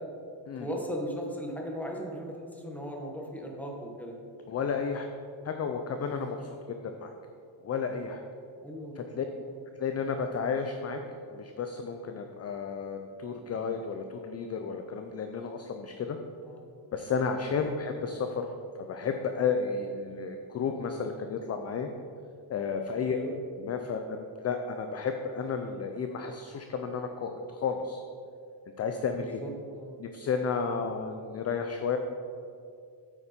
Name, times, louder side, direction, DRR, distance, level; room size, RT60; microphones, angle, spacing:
voice 1, 0.6-4.2 6.1-6.3 8.6-9.6 16.4-16.7 17.5-17.8 23.0-23.3 29.2-29.9, equal, 5° left, 0 dB, 1.3 m, -38 dB
voice 2, 4.5-5.1 5.4-6.5 7.0-7.1 7.6-8.2 9.0-9.3 9.8-11.0 11.3-16.2 16.9-18.5 18.9-21.9 22.5-23.2 23.6-28.0 28.8-29.4 30.0-32.0, left 5 dB, 35° left, 5 dB, 0.5 m, -32 dB
9.0 x 8.9 x 4.3 m, 2.4 s
cardioid pair, 155°, 46 cm